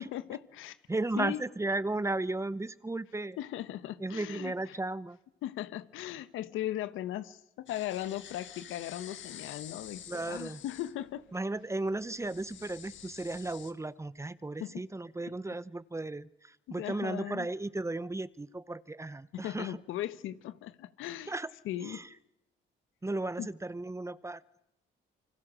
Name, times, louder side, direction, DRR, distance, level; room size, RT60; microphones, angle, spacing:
voice 1, 0.0-0.8 1.2-1.4 3.4-4.8 5.4-11.2 14.6-14.8 16.7-17.5 19.3-21.3 21.6-22.0 23.4-23.5, left 13 dB, 90° left, 1.3 m, -38 dB
voice 2, 0.9-3.4 4.0-5.2 10.1-10.6 11.3-19.8 21.3-21.5 21.8-22.1 23.0-24.4, right 2 dB, 15° right, 0.8 m, -35 dB
sound 1, 7.7-13.7, left 10 dB, 70° left, 1.8 m, -49 dB
28.5 x 24.5 x 6.3 m
cardioid pair, 90°, 20 cm